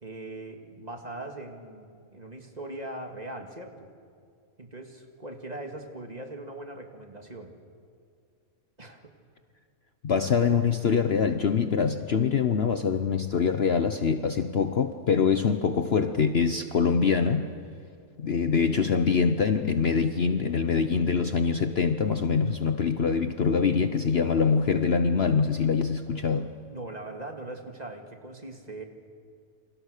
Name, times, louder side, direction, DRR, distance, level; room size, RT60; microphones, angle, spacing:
voice 1, 0.0-3.9 4.6-7.5 8.8-9.1 26.7-28.8, right 2 dB, 30° right, 4 dB, 2.2 m, -40 dB
voice 2, 10.0-17.5 18.2-26.5, left 6 dB, 50° left, 9 dB, 1.0 m, -24 dB
28.5 x 26.5 x 6.6 m, 2.2 s
omnidirectional pair, 1.5 m